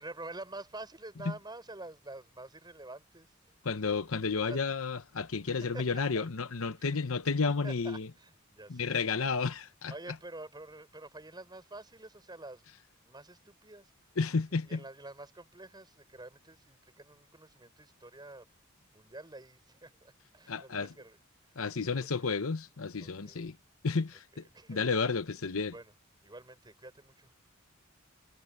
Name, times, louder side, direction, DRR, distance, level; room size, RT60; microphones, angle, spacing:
voice 1, 0.0-3.6 4.4-4.6 5.5-6.3 6.8-7.0 7.5-9.0 9.9-12.6 13.0-13.9 14.5-18.5 18.8-21.6 21.8-22.4 23.0-23.4 24.3-24.8 25.7-25.9 26.2-27.3, right 2 dB, 20° right, 6.4 m, -48 dB
voice 2, 3.7-8.1 8.7-9.9 14.2-14.8 20.5-20.9 21.6-23.6 23.8-24.2 24.7-25.7, left 4 dB, 75° left, 0.9 m, -31 dB
head